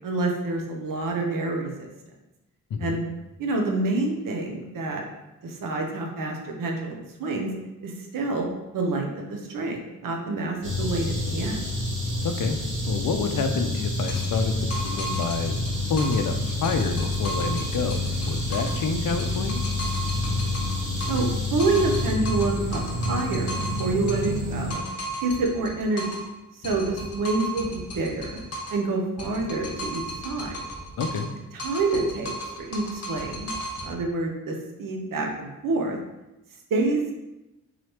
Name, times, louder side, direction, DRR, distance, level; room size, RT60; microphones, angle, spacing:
voice 1, 0.0-1.9 2.8-3.0 3.4-5.0 5.4-7.5 7.8-8.5 8.7-11.6 21.1-21.3 21.5-24.8 25.2-26.2 26.6-28.4 28.7-30.6 31.6-33.5 33.8-36.0 36.7-37.1, right 2 dB, 65° right, 1 dB, 0.7 m, -27 dB
sound 1, 10.6-24.7, left 1 dB, 35° right, 1.2 m, -28 dB
voice 2, 12.2-12.6 12.9-15.6 15.9-19.8 31.0-31.3, left 5 dB, 65° left, 6 dB, 0.5 m, -28 dB
sound 2, 14.1-16.3 16.6-18.8 19.2-21.3 21.6-26.3 26.6-28.8 29.2-31.3 31.6-33.9, right 1 dB, 45° left, 0.9 m, -35 dB
3.9 x 3.0 x 3.2 m, 0.97 s
wide cardioid pair, 110°, 35 cm